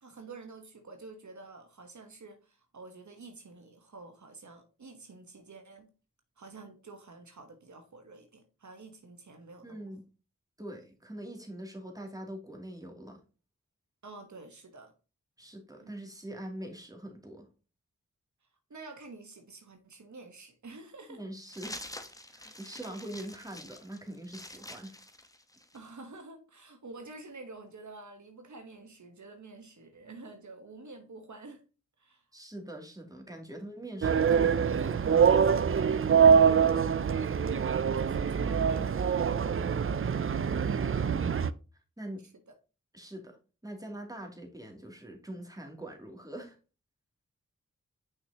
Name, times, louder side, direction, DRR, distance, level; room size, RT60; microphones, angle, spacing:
voice 1, 0.0-5.9 6.4-9.9 14.0-14.9 15.8-15.9 18.7-21.2 25.7-31.6 32.0-32.2 36.4-39.7, right 3 dB, 70° right, 1.2 m, -49 dB
voice 2, 9.6-10.0 10.6-13.2 15.4-17.5 21.1-21.9 22.3-25.0 32.3-35.6 42.0-42.2 42.9-43.4 43.6-46.6, right 1 dB, 10° right, 2.6 m, -43 dB
sound 1, 21.5-25.9, left 1 dB, 10° left, 1.1 m, -46 dB
sound 2, 34.0-41.5, right 7 dB, 45° right, 0.5 m, -24 dB
6.3 x 6.0 x 2.8 m
cardioid pair, 45°, 30 cm